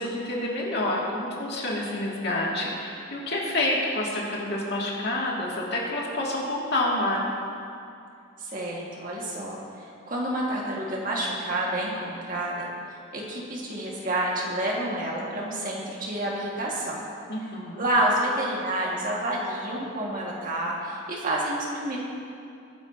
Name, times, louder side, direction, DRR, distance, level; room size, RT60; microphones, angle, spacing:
voice 1, 0.0-7.3 17.3-17.8, left 1 dB, 50° left, -4 dB, 2.4 m, -28 dB
voice 2, 8.4-12.7 13.1-17.0 17.8-22.0, right 1 dB, 40° right, -3 dB, 1.9 m, -29 dB
22.0 x 10.0 x 2.9 m, 2.5 s
head